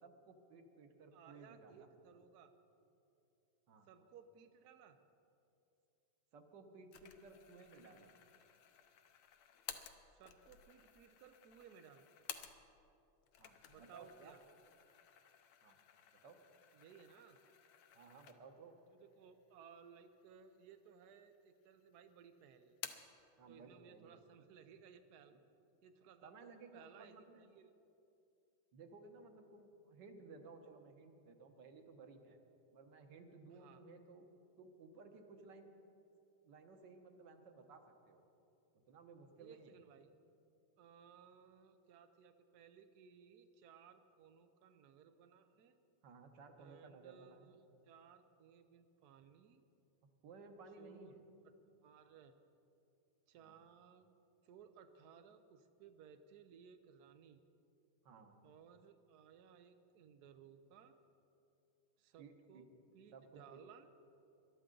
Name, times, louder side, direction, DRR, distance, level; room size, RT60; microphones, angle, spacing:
voice 1, 0.0-1.9 3.7-3.9 6.3-8.1 13.4-14.3 15.6-15.8 16.2-16.4 17.9-18.8 23.4-24.2 26.2-27.4 28.7-32.4 32.7-34.3 34.6-35.7 36.4-38.2 38.7-39.8 46.0-47.5 50.2-51.2 53.4-53.6 58.0-58.4 62.2-62.6 63.1-63.6, right 4 dB, 60° right, 5 dB, 1.5 m, -58 dB
voice 2, 1.1-2.5 3.8-5.0 10.1-12.1 13.7-14.4 16.7-17.4 18.9-22.8 23.5-25.3 25.8-26.3 26.7-27.8 33.5-33.8 39.4-40.1 40.8-45.8 46.6-49.6 50.8-51.2 51.8-52.4 53.3-54.1 54.4-57.4 58.4-60.9 62.0-62.7 62.9-63.9, right 7 dB, 75° right, 7 dB, 0.9 m, -61 dB
sound 1, 6.9-12.9 13.2-18.7 19.1-19.2 20.1-20.7 21.0-21.8 22.1-23.2, left 9 dB, 75° left, 1.6 m, -55 dB
21.5 x 12.0 x 3.8 m, 2.7 s
omnidirectional pair, 2.4 m